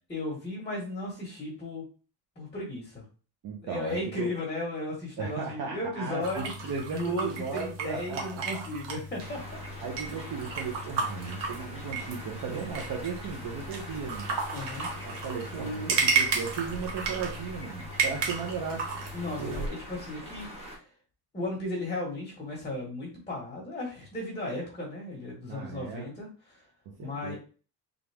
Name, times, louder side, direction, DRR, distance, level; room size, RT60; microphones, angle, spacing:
voice 1, 0.1-1.8 2.4-3.0 3.6-9.6 14.5-14.9 19.1-20.5 20.7-20.9 21.3-26.7 27.0-27.3, left 1 dB, 15° left, -1 dB, 1.3 m, -35 dB
voice 2, 3.4-4.3 5.2-8.5 9.8-14.3 15.0-19.1 19.4-19.5 25.4-26.0 26.9-27.3, right 6 dB, 65° right, -1 dB, 1.0 m, -36 dB
sound 1, 6.2-19.7, right 4 dB, 85° right, 1.3 m, -33 dB
sound 2, 9.2-20.7, equal, 15° right, 1.2 m, -43 dB
3.7 x 3.6 x 3.5 m, 0.37 s
cardioid pair, 155°, 41 cm